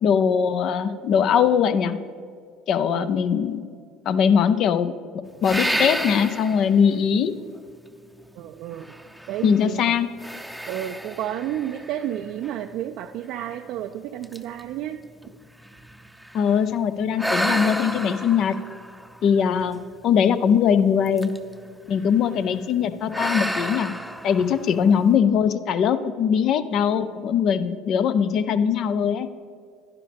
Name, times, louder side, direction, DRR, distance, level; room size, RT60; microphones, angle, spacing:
voice 1, 0.0-2.0 2.7-3.6 4.1-7.3 9.4-10.1 16.3-18.6 19.2-19.8 20.0-21.3 21.9-23.9 24.2-29.3, left 7 dB, 55° left, 12 dB, 0.5 m, -21 dB
sound 1, 5.4-6.7 7.3-7.4 8.8-9.7 10.2-12.6 13.3-13.4 13.8-14.0 14.2-16.5 17.2-19.9 21.1-21.6 21.9-22.2 23.1-25.0, equal, ahead, 0.7 m, -30 dB
voice 2, 8.3-8.9 9.3-9.8 10.7-15.0, right 11 dB, 65° right, 5 dB, 0.3 m, -31 dB
11.0 x 10.5 x 3.5 m, 2.3 s
hypercardioid pair, 65°, 0 cm